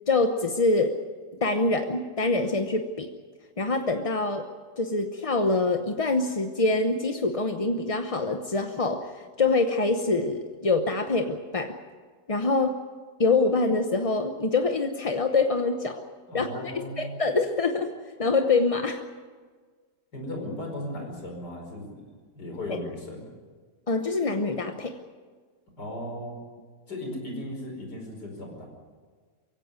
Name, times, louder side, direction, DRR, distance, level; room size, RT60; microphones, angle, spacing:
voice 1, 0.1-1.0 1.4-3.1 3.6-4.5 4.8-11.8 12.3-12.8 13.2-16.0 16.3-17.9 18.2-19.0 23.9-25.0, left 3 dB, 30° left, 6 dB, 0.7 m, -25 dB
voice 2, 16.3-17.1 20.1-23.2 25.8-26.4 26.9-28.7, left 1 dB, 80° left, 2 dB, 5.6 m, -36 dB
23.0 x 16.5 x 9.6 m, 1.5 s
omnidirectional pair, 1.8 m